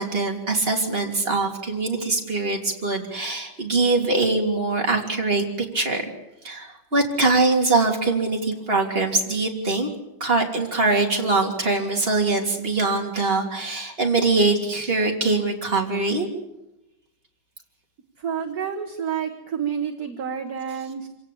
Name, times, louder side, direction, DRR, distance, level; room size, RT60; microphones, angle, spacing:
voice 1, 0.0-5.4 5.7-6.1 6.4-9.9 10.2-16.3, right 3 dB, 30° right, 1 dB, 3.3 m, -23 dB
voice 2, 18.2-21.1, right 7 dB, 50° right, 6 dB, 1.8 m, -29 dB
26.5 x 17.0 x 8.6 m, 0.94 s
omnidirectional pair, 2.2 m